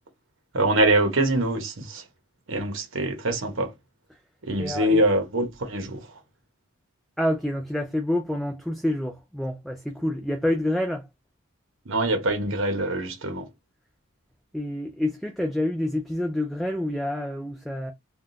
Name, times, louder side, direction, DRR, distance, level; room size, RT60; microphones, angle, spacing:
voice 1, 0.5-2.0 2.5-3.7 4.4-6.2 11.9-13.5, right 1 dB, 65° right, 1.0 m, -24 dB
voice 2, 4.6-5.0 7.2-11.0 14.5-17.9, left 1 dB, ahead, 0.3 m, -27 dB
3.4 x 2.3 x 2.6 m
head